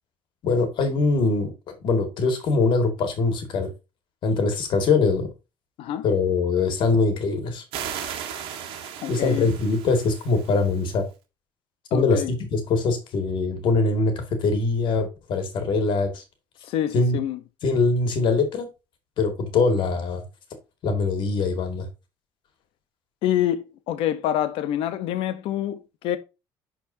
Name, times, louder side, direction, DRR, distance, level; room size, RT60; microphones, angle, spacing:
voice 1, 0.4-3.7 4.2-5.3 6.0-7.6 9.1-11.0 11.9-16.2 16.9-17.2 17.6-18.7 19.2-20.2 20.8-21.9, left 3 dB, 55° left, 2.1 m, -23 dB
sound 1, 7.7-11.0, right 8 dB, 70° right, 1.7 m, -36 dB
voice 2, 9.0-9.5 11.9-12.3 16.6-17.4 23.2-26.2, left 11 dB, 75° left, 0.9 m, -26 dB
12.0 x 4.3 x 2.7 m
cardioid pair, 135°, 10 cm